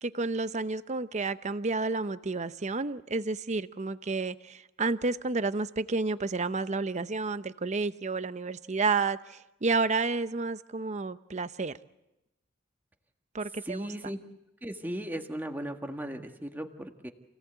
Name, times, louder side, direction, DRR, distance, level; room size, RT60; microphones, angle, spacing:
voice 1, 0.0-11.7 13.3-13.9, right 3 dB, 35° right, 13 dB, 0.7 m, -30 dB
voice 2, 13.6-14.2 14.6-17.1, right 1 dB, 10° right, 4 dB, 1.6 m, -37 dB
28.0 x 17.5 x 8.1 m, 0.94 s
head